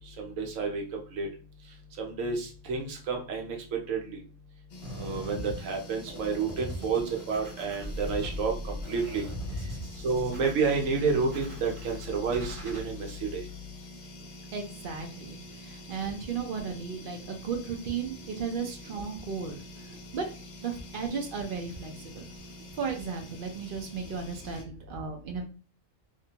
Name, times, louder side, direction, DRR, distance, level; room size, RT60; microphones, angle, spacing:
voice 1, 0.2-0.8 1.1-1.3 2.0-3.6 3.9-4.2 4.9-7.0 7.3-9.2 10.0-13.4, right 4 dB, 85° right, 2 dB, 1.1 m, -30 dB
sound 1, 4.7-24.6, equal, 70° left, 0.4 m, -48 dB
sound 2, 4.8-12.8, equal, 25° right, 1.1 m, -41 dB
voice 2, 14.5-20.2 20.6-25.4, right 5 dB, 65° right, 4 dB, 0.5 m, -35 dB
2.6 x 2.2 x 2.8 m, 0.37 s
omnidirectional pair, 1.3 m